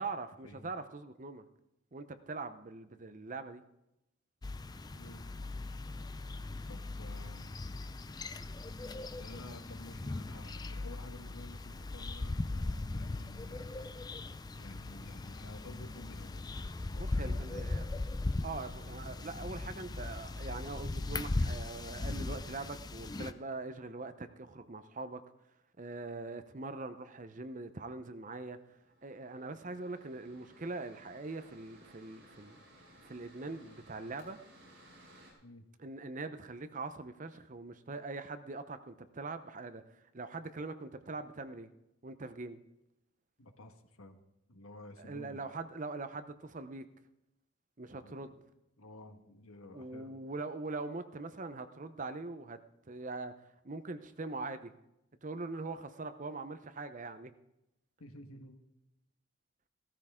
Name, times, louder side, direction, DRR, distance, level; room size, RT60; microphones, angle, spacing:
voice 1, 0.0-1.5 1.9-3.6 4.9-5.0 17.0-17.9 18.4-25.2 25.8-28.6 29.0-32.6 33.0-34.4 35.8-41.7 42.0-42.6 45.0-46.8 47.8-48.4 49.7-52.6 52.9-53.3 53.6-54.7 55.2-57.3, right 3 dB, 35° right, 0.7 m, -42 dB
sound 1, 4.4-23.3, left 2 dB, 20° left, 0.4 m, -39 dB
voice 2, 5.0-5.3 6.7-7.5 9.2-13.7 14.6-16.5 16.9-17.7 35.4-35.7 43.4-44.2 44.5-45.4 48.0-48.4 48.8-50.2 58.0-58.6, left 1 dB, 85° left, 1.4 m, -52 dB
Mechanical fan, 28.3-35.3, right 1 dB, 65° right, 5.4 m, -60 dB
16.0 x 13.5 x 3.7 m
head